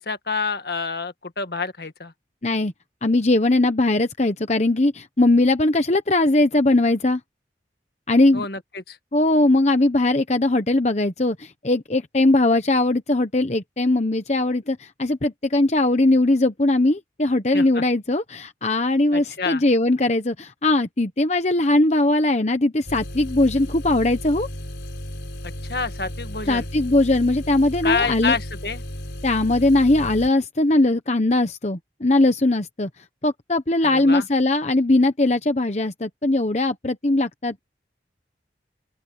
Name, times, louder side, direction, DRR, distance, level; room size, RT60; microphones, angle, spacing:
voice 1, 0.0-2.1 8.3-9.0 17.5-17.8 19.1-19.6 25.4-26.7 27.8-28.8 33.8-34.3, left 4 dB, 60° left, 1.7 m, -28 dB
voice 2, 3.0-7.2 8.1-8.4 9.1-24.5 26.5-28.4 29.2-32.9 33.2-37.6, left 2 dB, 40° left, 1.0 m, -20 dB
sound 1, 22.9-30.3, equal, 85° left, 5.0 m, -34 dB
open air
head